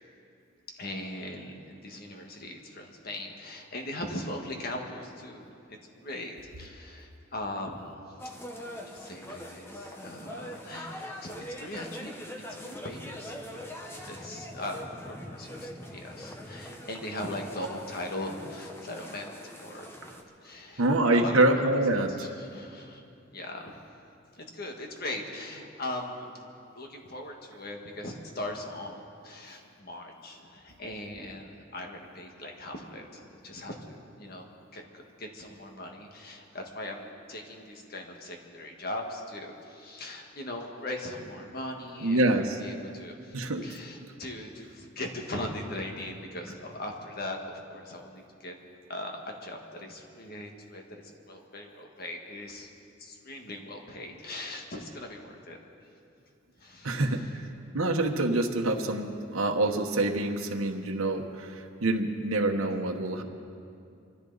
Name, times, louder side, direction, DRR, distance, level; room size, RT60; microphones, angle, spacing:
voice 1, 0.8-8.0 8.7-12.1 12.6-19.3 19.6-19.9 20.4-21.6 22.2-23.0 23.3-23.7 24.3-26.3 26.7-48.5 48.9-50.8 51.3-52.7 53.0-55.6 56.6-57.1, left 1 dB, 45° left, 2 dB, 1.7 m, -40 dB
sound 1, 8.2-20.2, equal, 10° left, 1.0 m, -43 dB
voice 2, 20.8-22.1 42.0-42.6 43.3-43.6 56.8-57.2 57.7-63.2, right 2 dB, 90° right, 3 dB, 1.2 m, -26 dB
24.5 x 14.0 x 4.0 m, 2.5 s
head